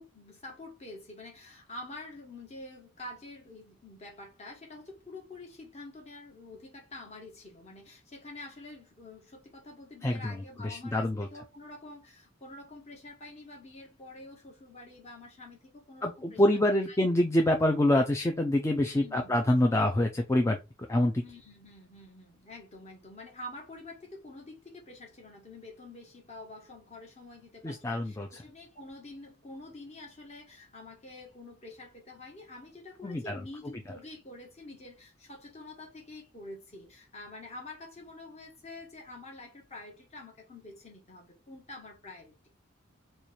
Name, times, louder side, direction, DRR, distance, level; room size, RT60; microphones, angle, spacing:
voice 1, 0.4-1.3 1.7-6.6 6.9-7.3 7.6-7.8 8.2-9.2 9.7-10.9 11.3-12.0 12.4-15.6 15.9-17.0 18.9-19.3 21.2-23.9 24.2-24.4 24.9-27.4 27.9-28.0 28.5-30.4 30.7-31.9 32.2-32.7 33.0-34.9 35.5-35.7 36.1-36.8 37.1-41.2 41.5-42.2, left 2 dB, 35° left, 1.3 m, -46 dB
voice 2, 10.0-11.3 16.0-20.6 20.9-21.2 27.6-28.4 33.0-33.4, left 1 dB, 15° left, 0.4 m, -26 dB
3.1 x 2.3 x 4.2 m
head